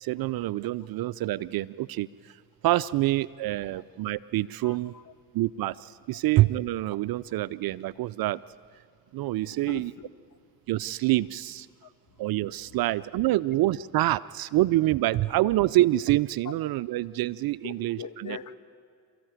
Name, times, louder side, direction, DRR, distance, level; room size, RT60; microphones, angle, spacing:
voice 1, 0.0-2.1 2.6-4.9 5.3-8.4 9.1-9.9 10.7-11.7 12.2-18.4, right 16 dB, 45° right, 18 dB, 0.5 m, -26 dB
voice 2, 4.6-5.1 9.5-10.1 11.8-11.9 12.2-12.3 13.3-13.5 17.6-18.5, left 6 dB, 40° left, 11 dB, 1.6 m, -42 dB
28.5 x 14.5 x 9.1 m, 2.3 s
hypercardioid pair, 60°, 50 cm